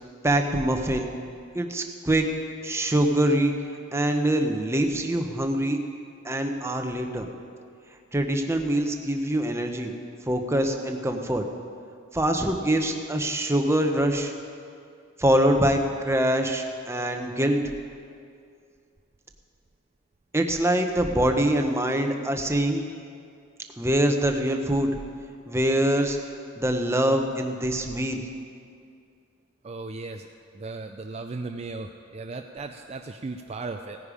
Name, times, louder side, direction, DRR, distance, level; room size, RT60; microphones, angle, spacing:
voice 1, 0.2-1.1 1.5-2.2 2.6-3.5 3.9-5.8 6.2-7.3 8.1-9.9 10.3-11.4 12.1-14.3 15.2-17.6 20.3-22.8 23.8-24.9 25.5-26.2 26.6-28.2, right 1 dB, 15° right, 4 dB, 0.9 m, -24 dB
voice 2, 29.6-30.3 30.5-34.0, right 3 dB, 30° right, 5 dB, 0.4 m, -36 dB
17.0 x 10.0 x 4.9 m, 2.3 s
head